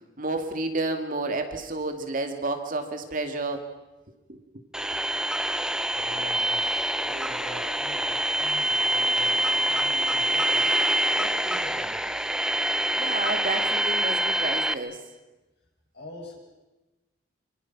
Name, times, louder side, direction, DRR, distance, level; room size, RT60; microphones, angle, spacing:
voice 1, 0.2-3.7 4.3-4.4 12.9-15.0, right 2 dB, 45° right, 6 dB, 2.4 m, -30 dB
sound 1, 4.7-14.7, right 1 dB, 5° right, 0.8 m, -25 dB
voice 2, 5.9-10.7 11.1-12.3 15.9-16.4, left 2 dB, 60° left, 0 dB, 7.9 m, -44 dB
27.0 x 25.5 x 6.1 m, 1.1 s
head